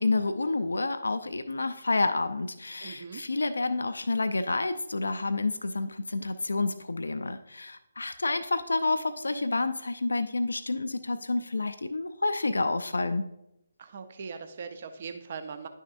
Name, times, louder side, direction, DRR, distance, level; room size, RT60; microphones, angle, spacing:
voice 1, 0.0-13.2, left 3 dB, 70° left, 10 dB, 0.5 m, -29 dB
voice 2, 2.8-3.2 13.8-15.7, right 5 dB, 40° right, 8 dB, 0.8 m, -40 dB
10.5 x 6.3 x 2.5 m, 0.83 s
figure-of-eight pair, 145°, 0 cm